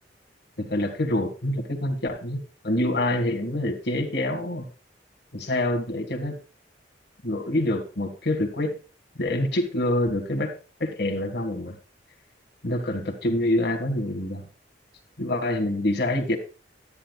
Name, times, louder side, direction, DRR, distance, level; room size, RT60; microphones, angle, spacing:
voice 1, 0.6-4.6 5.3-6.4 7.2-8.7 9.2-10.5 10.8-11.7 12.6-14.4 15.2-16.4, left 1 dB, 65° left, 4 dB, 1.7 m, -26 dB
13.0 x 8.8 x 2.4 m, 0.35 s
head